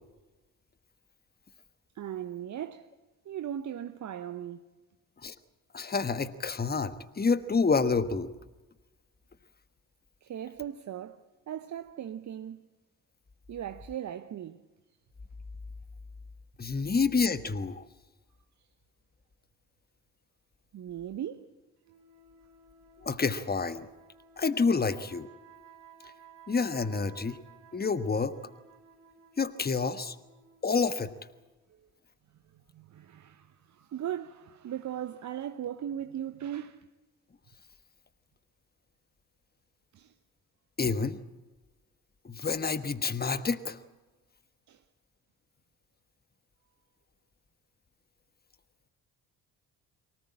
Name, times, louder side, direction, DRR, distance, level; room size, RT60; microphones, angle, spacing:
voice 1, 1.9-2.9 3.2-4.6 10.2-12.6 13.5-14.6 16.7-16.8 20.7-21.5 31.7-31.9 32.5-36.9 39.9-40.1 44.7-44.8, right 10 dB, 40° right, 1.0 m, -38 dB
voice 2, 5.7-8.3 16.6-17.8 23.0-23.9 24.4-25.3 26.5-27.4 27.7-28.3 29.4-30.1 30.6-31.1 40.8-41.2 42.2-43.8, left 4 dB, 20° left, 1.4 m, -28 dB
sound 1, 21.8-31.5, right 6 dB, 70° right, 3.7 m, -57 dB
23.5 x 18.5 x 8.7 m
figure-of-eight pair, 45°, 44 cm